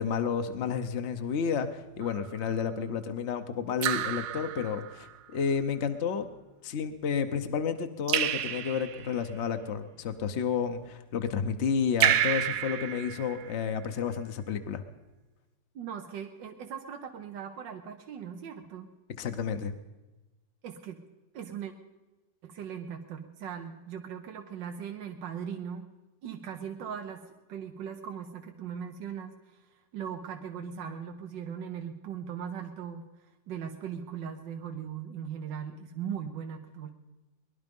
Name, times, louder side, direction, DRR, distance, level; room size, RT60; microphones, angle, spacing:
voice 1, 0.0-6.3 6.6-14.8 19.2-19.7, left 6 dB, 50° left, 7 dB, 0.9 m, -31 dB
Raindrop / Drip, 2.0-2.5 3.8-5.2 8.1-9.2 12.0-13.7, right 10 dB, 65° right, 0.9 m, -29 dB
voice 2, 15.8-18.9 20.6-21.0 21.3-21.7 22.4-25.8 26.2-27.2 27.5-33.1 33.5-36.9, right 8 dB, 85° right, 4 dB, 1.6 m, -39 dB
20.5 x 11.5 x 5.3 m, 1.1 s
omnidirectional pair, 1.9 m